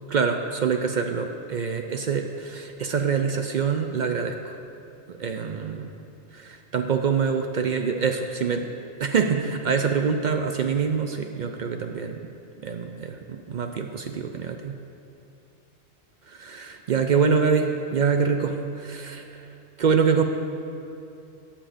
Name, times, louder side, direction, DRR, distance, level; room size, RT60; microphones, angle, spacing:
voice 1, 0.1-4.6 5.1-5.9 6.3-8.7 9.0-12.2 12.6-14.8 16.4-19.5 19.8-20.2, right 6 dB, 55° right, 5 dB, 0.5 m, -25 dB
10.0 x 7.3 x 5.0 m, 2.6 s
omnidirectional pair, 1.2 m